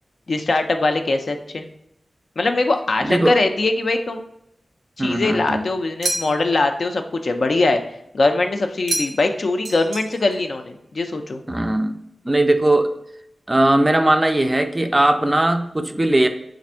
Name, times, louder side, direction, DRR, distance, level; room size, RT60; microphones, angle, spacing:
voice 1, 0.3-1.6 2.4-4.2 5.0-7.8 8.1-11.4, left 2 dB, 60° left, 6 dB, 0.4 m, -21 dB
voice 2, 3.0-3.4 5.0-5.6 11.5-11.9 12.3-12.9 13.5-16.3, right 1 dB, 20° right, 7 dB, 0.3 m, -18 dB
sound 1, 6.0-6.6 8.9-9.4 9.6-10.4, right 2 dB, 85° right, 0.4 m, -28 dB
3.4 x 2.5 x 4.3 m, 0.76 s
wide cardioid pair, 105°, 0 cm